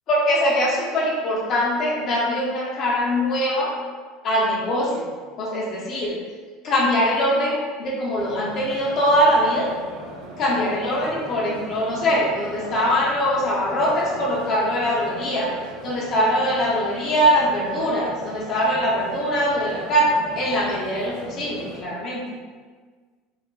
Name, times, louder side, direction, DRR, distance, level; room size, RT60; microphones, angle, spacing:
voice 1, 0.1-3.7 4.2-5.1 5.4-6.2 6.6-9.7 10.4-15.5 15.8-22.2, equal, 35° left, -4 dB, 0.6 m, -22 dB
sound 1, 8.2-21.8, right 1 dB, 75° right, 0.7 m, -38 dB
3.4 x 2.3 x 3.7 m, 1.5 s
cardioid pair, 175°, 0 cm